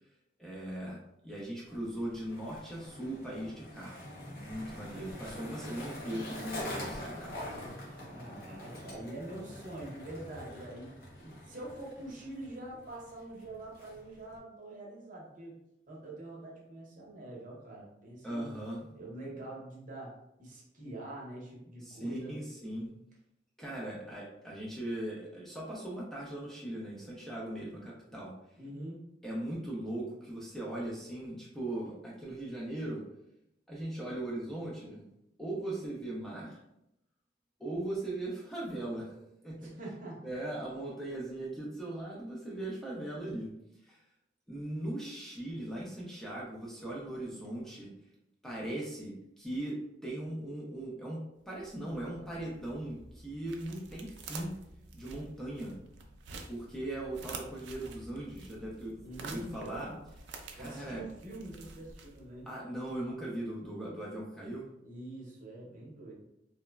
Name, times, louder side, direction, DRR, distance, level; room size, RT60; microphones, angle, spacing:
voice 1, 0.4-1.0 1.2-7.4 18.2-18.9 21.8-22.9 23.6-28.3 29.2-33.0 33.7-35.0 35.4-36.6 37.6-39.7 40.2-43.5 43.8-44.0 44.5-47.9 48.4-49.7 50.0-54.5 54.9-55.8 56.5-59.9 60.5-61.0 62.5-64.6, right 1 dB, ahead, -5 dB, 0.4 m, -39 dB
Skateboard, 1.7-14.4, left 1 dB, 55° left, 0.7 m, -45 dB
voice 2, 7.9-10.9 11.2-15.6 15.9-18.5 18.9-22.4 28.6-29.1 39.6-40.2 59.0-60.0 60.5-62.5 64.8-66.1, right 1 dB, 50° right, -3 dB, 0.7 m, -45 dB
sound 1, 51.5-62.5, right 4 dB, 75° right, 0.4 m, -49 dB
3.0 x 2.0 x 2.2 m, 0.82 s
head